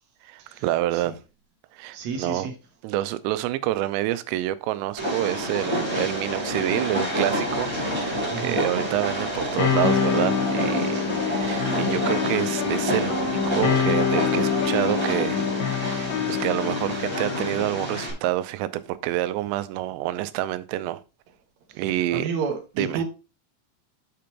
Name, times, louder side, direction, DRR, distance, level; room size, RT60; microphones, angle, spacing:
voice 1, 0.2-1.1 1.7-2.5 2.8-7.7 8.0-15.4 15.7-21.0 21.8-22.3 22.8-23.0, right 14 dB, 90° right, 2.9 m, -28 dB
voice 2, 1.9-2.5 8.3-8.6 10.9-11.2 22.1-23.0, right 5 dB, 70° right, 1.8 m, -30 dB
Train, 5.0-18.1, equal, 10° right, 2.2 m, -29 dB
sound 1, 9.6-17.6, left 7 dB, 85° left, 3.5 m, -25 dB
7.8 x 5.2 x 4.4 m
omnidirectional pair, 5.0 m